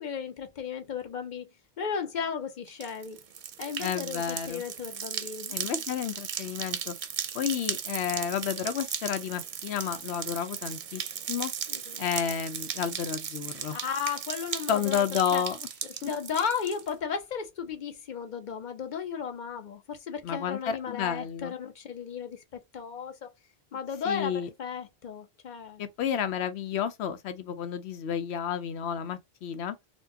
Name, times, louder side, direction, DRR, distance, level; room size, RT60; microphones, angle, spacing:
voice 1, 0.0-1.5 1.8-3.2 3.6-5.8 11.7-12.0 13.5-15.0 15.3-15.4 16.0-22.4 22.7-23.3 23.7-25.8, left 6 dB, 50° left, 0.9 m, -35 dB
sound 1, 2.7-16.9, right 8 dB, 55° right, 0.6 m, -37 dB
voice 2, 3.8-4.6 5.5-6.9 7.3-11.0 11.3-11.5 12.0-13.8 14.7-15.6 16.0-16.1 20.2-21.5 24.1-24.5 25.8-29.8, left 8 dB, 85° left, 0.8 m, -31 dB
4.4 x 2.2 x 2.6 m
omnidirectional pair, 1.1 m